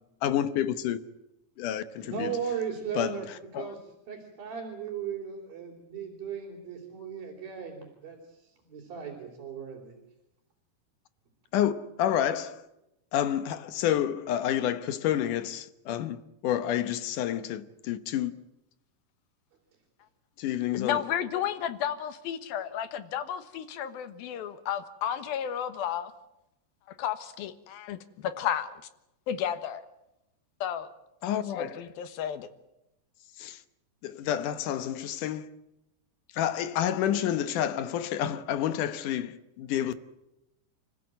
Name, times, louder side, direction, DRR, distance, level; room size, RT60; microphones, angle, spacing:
voice 1, 0.2-1.0 1.6-2.4 2.9-3.2 3.5-3.7 11.5-12.7 13.1-18.3 20.4-21.0 31.2-31.8 33.4-33.6 34.0-35.5 36.3-39.9, left 10 dB, 70° left, 2.4 m, -29 dB
voice 2, 2.0-3.3 3.5-3.8 4.1-10.0, right 7 dB, 75° right, 5.4 m, -37 dB
voice 3, 20.7-26.1 27.0-28.8 29.3-29.9 30.6-30.9 31.2-32.5, left 9 dB, 85° left, 3.1 m, -32 dB
29.0 x 15.5 x 9.2 m
omnidirectional pair, 4.2 m